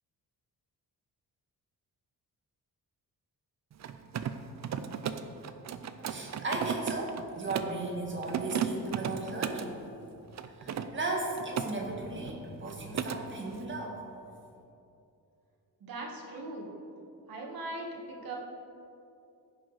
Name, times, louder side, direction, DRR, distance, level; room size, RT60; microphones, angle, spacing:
Mechanisms, 3.7-7.8 8.2-9.7 10.3-11.7 12.0-12.4 12.6-13.2, right 8 dB, 45° right, 0.5 m, -35 dB
voice 1, 6.1-9.8 10.6-14.0, right 2 dB, 30° right, -1 dB, 1.8 m, -36 dB
voice 2, 15.8-16.7 17.3-18.4, right 2 dB, 65° right, -1 dB, 2.0 m, -40 dB
15.0 x 6.4 x 5.0 m, 2.7 s
wide cardioid pair, 165°, 37 cm